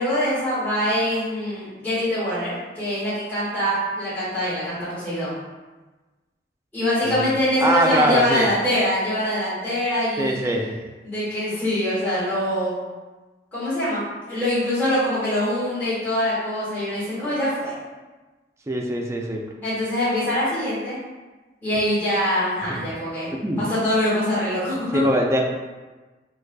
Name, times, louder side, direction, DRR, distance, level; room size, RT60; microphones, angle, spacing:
voice 1, 0.0-5.3 6.7-10.4 11.0-12.8 13.5-14.0 14.3-17.7 19.6-21.0 21.6-23.3 23.6-25.0, left 1 dB, 10° left, -14 dB, 1.5 m, -24 dB
voice 2, 7.6-8.5 10.2-10.7 18.7-19.4 22.7-22.9 23.4-23.6 24.9-25.5, right 1 dB, 15° right, 0 dB, 0.3 m, -22 dB
4.6 x 2.3 x 2.2 m, 1.2 s
head